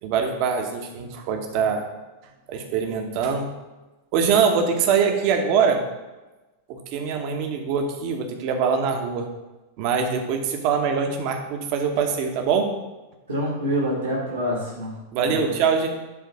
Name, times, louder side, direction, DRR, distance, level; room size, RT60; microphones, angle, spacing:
voice 1, 0.0-1.8 2.5-3.5 4.1-5.8 6.7-9.3 9.8-12.7 15.1-15.9, right 6 dB, 45° right, 4 dB, 1.2 m, -23 dB
voice 2, 13.3-14.9 15.2-15.7, equal, 75° right, -4 dB, 2.0 m, -27 dB
10.5 x 3.8 x 4.9 m, 1.1 s
figure-of-eight pair, 90°, 0 cm